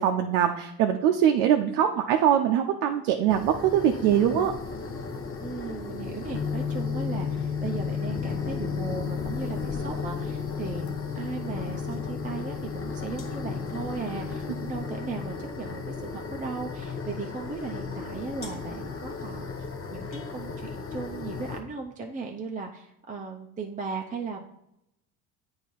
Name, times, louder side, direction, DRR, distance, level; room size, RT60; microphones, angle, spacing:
voice 1, 0.0-4.5, right 9 dB, 75° right, 4 dB, 0.6 m, -22 dB
sound 1, 3.3-21.6, left 4 dB, 30° left, 0.9 m, -36 dB
voice 2, 5.4-19.5 19.9-24.4, right 4 dB, 20° right, 1 dB, 0.6 m, -37 dB
sound 2, 6.3-15.3, left 7 dB, 70° left, 0.9 m, -34 dB
8.2 x 2.8 x 4.6 m, 0.82 s
hypercardioid pair, 70°, 44 cm